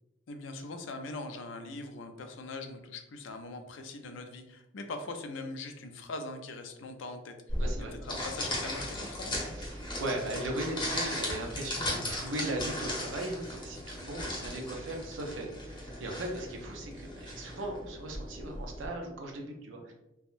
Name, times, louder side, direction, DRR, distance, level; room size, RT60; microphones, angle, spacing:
voice 1, 0.3-7.4 8.0-9.3, left 2 dB, 75° left, 6 dB, 0.4 m, -41 dB
sound 1, 7.5-18.9, left 1 dB, 25° left, 0.8 m, -37 dB
voice 2, 7.6-7.9 9.6-19.9, right 1 dB, 75° right, 2 dB, 0.6 m, -38 dB
3.4 x 2.1 x 2.5 m, 0.93 s
head